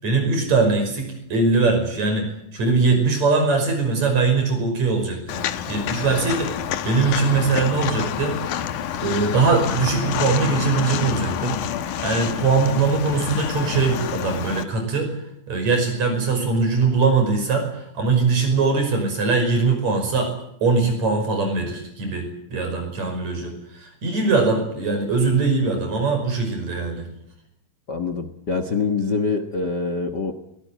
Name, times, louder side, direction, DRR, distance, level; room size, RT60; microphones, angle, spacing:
voice 1, 0.0-5.4 5.7-6.6 6.8-8.4 9.0-11.6 12.0-15.1 15.5-20.3 20.6-27.1, right 4 dB, 55° right, 5 dB, 6.8 m, -21 dB
Walk footsteps, 5.3-14.6, left 10 dB, 75° left, 2.6 m, -28 dB
voice 2, 27.9-30.3, left 4 dB, 45° left, 9 dB, 1.6 m, -25 dB
23.5 x 18.5 x 9.3 m, 0.79 s
omnidirectional pair, 3.7 m